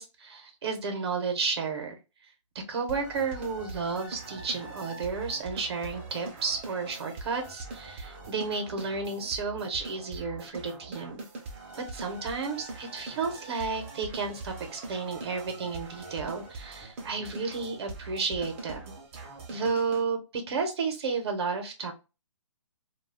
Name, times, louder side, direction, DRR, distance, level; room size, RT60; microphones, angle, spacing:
voice 1, 0.0-1.9 2.7-11.2 11.9-18.8 19.5-21.9, right 4 dB, 50° right, 5 dB, 0.8 m, -32 dB
sound 1, 2.9-20.0, right 3 dB, 25° right, 0.5 m, -42 dB
2.3 x 2.0 x 3.3 m, 0.29 s
hypercardioid pair, 155°, 17 cm